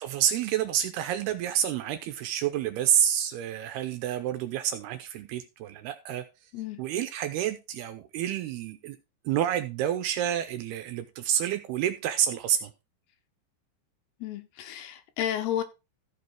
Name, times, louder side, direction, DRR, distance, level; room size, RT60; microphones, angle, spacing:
voice 1, 0.0-6.3 6.8-9.0 9.3-12.7, right 10 dB, 80° right, 2.5 m, -28 dB
voice 2, 14.2-15.6, left 10 dB, 75° left, 2.7 m, -32 dB
14.5 x 5.3 x 4.6 m
omnidirectional pair, 5.1 m